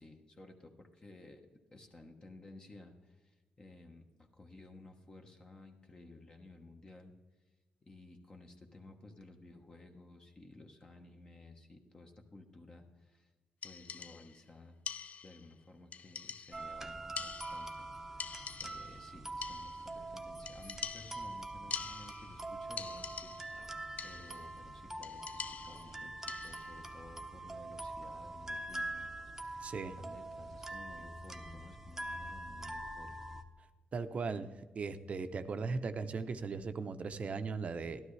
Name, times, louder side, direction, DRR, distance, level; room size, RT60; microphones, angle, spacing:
voice 1, 0.0-7.1 7.8-13.3 13.6-14.8 15.2-18.2 18.6-33.3, left 2 dB, 25° left, 3 dB, 1.1 m, -55 dB
sound 1, 13.6-14.4 14.9-15.5 15.9-16.7 17.2-17.9 18.2-19.1 19.4-20.0 20.5-22.4 22.8-23.6 24.0-24.5 25.0-26.8, left 6 dB, 50° left, 0.4 m, -45 dB
sound 2, 16.5-33.4, right 2 dB, 10° right, 0.8 m, -44 dB
voice 2, 29.6-30.0 33.9-34.5 34.7-38.0, right 4 dB, 45° right, 10 dB, 0.7 m, -38 dB
12.5 x 12.5 x 3.2 m, 1.2 s
cardioid pair, 110°, 3 cm